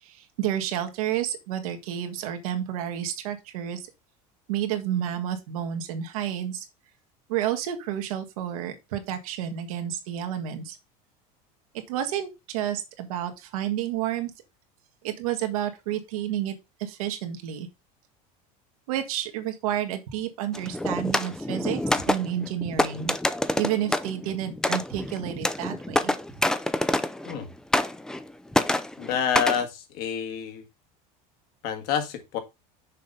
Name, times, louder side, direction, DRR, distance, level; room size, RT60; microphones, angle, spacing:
voice 1, 0.0-3.9 4.5-6.7 7.3-10.8 11.9-14.3 15.0-17.7 18.9-23.1 23.6-26.1, right 10 dB, 90° right, 1.7 m, -30 dB
sound 1, 20.5-27.4 27.7-28.3 28.5-29.6, left 1 dB, 5° left, 0.4 m, -27 dB
voice 2, 29.0-30.6 31.6-32.4, left 7 dB, 60° left, 1.8 m, -28 dB
6.5 x 3.9 x 5.4 m
supercardioid pair, 135°, 18 cm